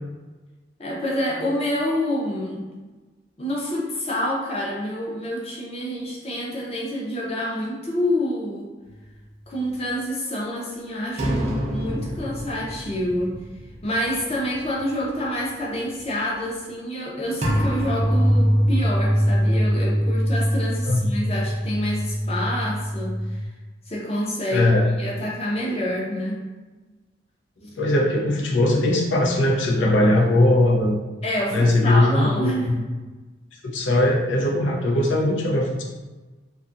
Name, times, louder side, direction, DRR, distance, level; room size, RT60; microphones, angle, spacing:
voice 1, 0.8-2.7 3.4-8.7 9.5-13.4 13.8-23.5 23.9-26.5 31.2-32.8, equal, 35° left, -3 dB, 0.6 m, -27 dB
sound 1, 11.2-14.3 14.6-14.8 17.4-23.5, equal, 40° right, 0.4 m, -23 dB
voice 2, 24.5-24.8 27.6-31.0 31.5-32.7 33.6-35.8, left 1 dB, 85° left, -1 dB, 0.5 m, -20 dB
2.6 x 2.3 x 2.5 m, 1.2 s
head